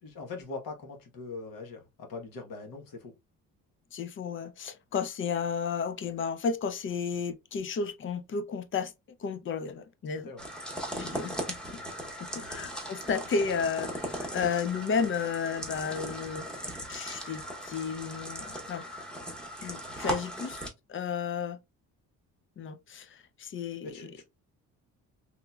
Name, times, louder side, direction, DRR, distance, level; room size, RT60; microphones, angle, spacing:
voice 1, 0.0-3.1 10.2-10.4 12.4-12.6 23.8-24.2, left 3 dB, 70° left, 1.2 m, -42 dB
voice 2, 3.9-8.9 9.2-10.3 10.9-11.4 12.3-16.5 16.9-18.8 19.6-20.6 20.9-21.6 22.6-24.1, left 6 dB, 35° left, 0.4 m, -33 dB
sound 1, 10.4-20.7, right 1 dB, ahead, 0.8 m, -38 dB
3.6 x 2.9 x 2.3 m
cardioid pair, 125°, 36 cm